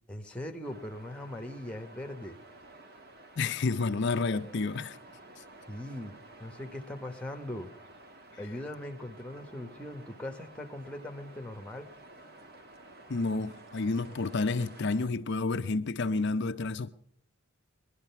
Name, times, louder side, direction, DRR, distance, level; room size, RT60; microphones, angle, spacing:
voice 1, 0.1-2.4 5.7-6.1 6.4-7.7 8.4-11.9, left 1 dB, 5° left, 1.1 m, -40 dB
sound 1, 0.6-15.1, right 2 dB, 45° right, 1.4 m, -52 dB
voice 2, 3.4-5.0 13.1-16.9, left 3 dB, 50° left, 0.5 m, -30 dB
20.0 x 11.5 x 5.7 m
head